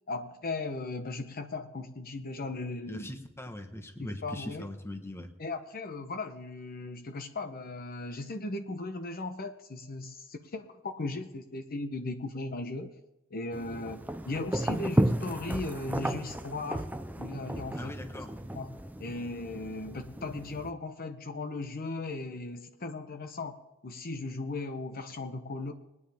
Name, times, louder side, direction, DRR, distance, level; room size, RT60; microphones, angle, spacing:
voice 1, 0.1-3.1 4.0-4.7 5.4-12.9 13.3-16.8 17.2-18.1 18.5-23.6 23.8-25.7, left 2 dB, 45° left, 7 dB, 0.8 m, -37 dB
voice 2, 2.9-5.3 17.8-18.3, left 1 dB, 10° left, 6 dB, 1.1 m, -41 dB
sound 1, 13.5-20.7, right 1 dB, 10° right, 0.5 m, -33 dB
21.0 x 9.6 x 3.5 m, 0.99 s
head